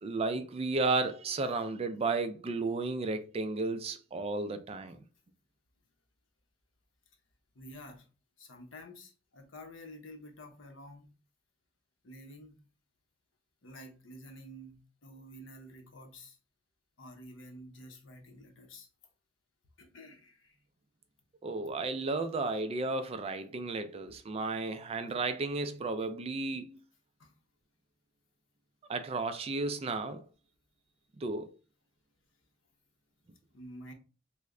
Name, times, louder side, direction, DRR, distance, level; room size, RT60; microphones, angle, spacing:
voice 1, 0.0-5.0 21.4-26.8 28.9-30.2 31.2-31.5, right 3 dB, 30° right, 0.3 m, -33 dB
voice 2, 7.5-8.1 8.4-11.1 12.0-12.7 13.6-16.4 17.0-18.9 19.8-20.6 27.2-27.3 33.5-33.9, equal, 75° left, 0.8 m, -50 dB
3.2 x 2.1 x 3.6 m
head